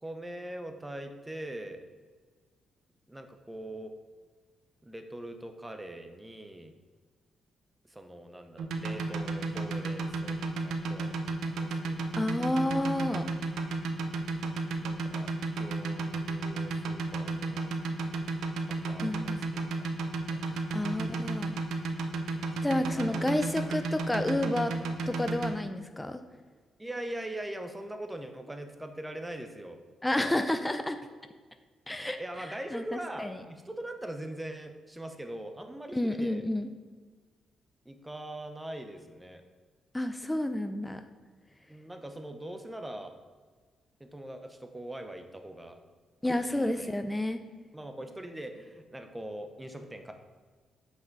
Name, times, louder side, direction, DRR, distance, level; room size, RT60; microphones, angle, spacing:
voice 1, 0.0-1.8 3.1-3.9 4.8-6.7 7.8-12.7 14.8-17.7 18.6-20.6 23.0-23.4 26.8-29.8 32.2-36.5 37.8-39.4 41.7-43.1 44.0-45.8 46.2-46.9 47.7-50.1, right 1 dB, 10° right, 6 dB, 0.9 m, -42 dB
sound 1, 8.6-25.5, right 3 dB, 80° right, 0.7 m, -32 dB
voice 2, 12.1-13.2 19.0-19.4 20.7-21.5 22.6-24.8 25.1-26.2 30.0-31.0 31.9-32.2 32.7-32.8 33.2-33.4 35.9-36.7 39.9-41.0 46.2-47.4, left 1 dB, 10° left, 8 dB, 0.5 m, -30 dB
7.9 x 5.9 x 4.0 m, 1.5 s
cardioid pair, 75°, 0 cm